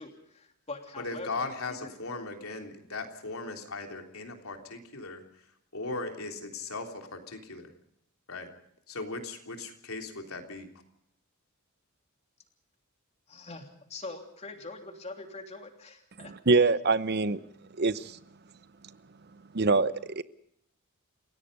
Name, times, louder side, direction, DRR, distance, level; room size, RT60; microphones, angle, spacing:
voice 1, 0.0-1.3 1.7-1.9 13.3-16.3, left 3 dB, 30° left, 3.2 m, -43 dB
voice 2, 1.0-5.4 5.7-7.7 8.3-8.5 8.9-10.7, left 3 dB, 75° left, 3.4 m, -38 dB
voice 3, 16.2-17.4 17.8-18.2 19.5-20.2, right 3 dB, 50° right, 0.8 m, -25 dB
29.5 x 17.0 x 5.4 m
head